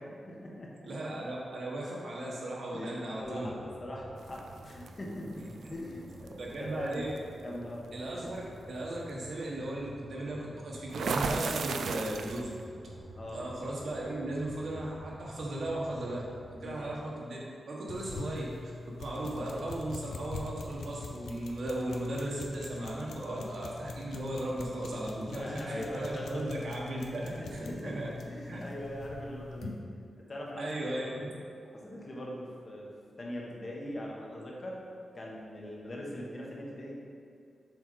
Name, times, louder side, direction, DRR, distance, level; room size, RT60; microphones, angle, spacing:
voice 1, 0.3-0.7 2.7-5.4 5.7-7.0 7.4-7.8 13.1-13.4 16.6-16.8 25.2-26.5 27.2-29.7 30.3-30.8 31.2-31.3 31.7-32.9 33.2-34.8 35.1-37.0, equal, 30° left, -3 dB, 1.1 m, -41 dB
voice 2, 0.9-3.5 6.4-7.1 7.9-8.4 8.7-12.5 13.3-17.4 17.7-18.7 19.0-28.1 28.5-28.6 30.6-31.1, right 1 dB, 60° right, -3 dB, 1.2 m, -36 dB
sound 1, 3.2-16.9, equal, 45° right, 0.8 m, -50 dB
sound 2, 4.3-4.9 6.3-6.4 6.9-7.2 10.9-12.6, right 5 dB, 80° right, 0.3 m, -33 dB
sound 3, 17.9-29.8, left 3 dB, 90° left, 0.6 m, -43 dB
7.1 x 4.5 x 3.9 m, 2.3 s
wide cardioid pair, 175°, 0 cm